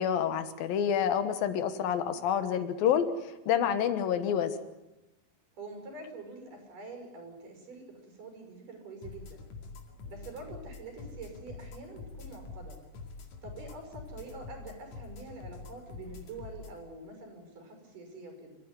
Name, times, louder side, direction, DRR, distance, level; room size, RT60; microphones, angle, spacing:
voice 1, 0.0-3.0 3.5-4.5, left 8 dB, 75° left, 10 dB, 3.2 m, -28 dB
voice 2, 5.6-9.5 10.0-12.8 13.4-18.6, right 2 dB, 60° right, 4 dB, 7.5 m, -46 dB
sound 1, 9.0-16.8, left 4 dB, 55° left, 3.4 m, -46 dB
27.0 x 15.0 x 9.8 m, 0.99 s
omnidirectional pair, 4.2 m